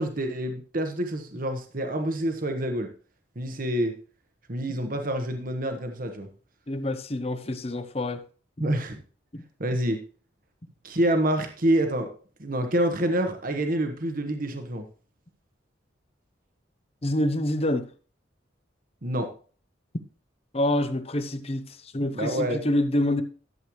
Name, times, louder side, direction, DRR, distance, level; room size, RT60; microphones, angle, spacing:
voice 1, 0.0-2.9 3.4-3.9 4.5-6.3 8.6-9.0 9.6-10.0 10.8-12.1 12.4-14.8 19.0-19.3 22.1-22.6, right 1 dB, 50° right, 1.2 m, -27 dB
voice 2, 6.7-8.2 9.3-9.4 17.0-17.9 20.5-23.2, left 1 dB, 35° left, 0.8 m, -27 dB
12.0 x 7.8 x 3.1 m
head